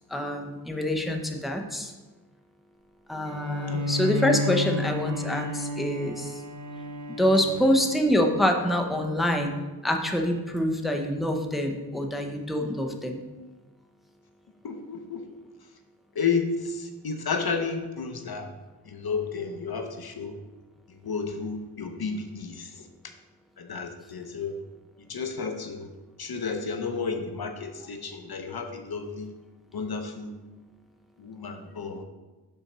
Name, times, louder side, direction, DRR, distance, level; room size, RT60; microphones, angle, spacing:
voice 1, 0.1-1.9 3.1-6.4 7.1-13.2, equal, ahead, 3 dB, 0.7 m, -26 dB
Bowed string instrument, 3.2-8.7, left 2 dB, 45° right, 0.7 m, -32 dB
voice 2, 14.6-15.3 16.1-18.5 18.9-20.4 20.9-22.9 23.6-24.6 25.0-25.9 26.2-29.3 29.7-30.4 31.2-32.0, left 5 dB, 60° left, 6 dB, 0.8 m, -32 dB
5.5 x 4.3 x 6.0 m, 1.2 s
wide cardioid pair, 85°, 41 cm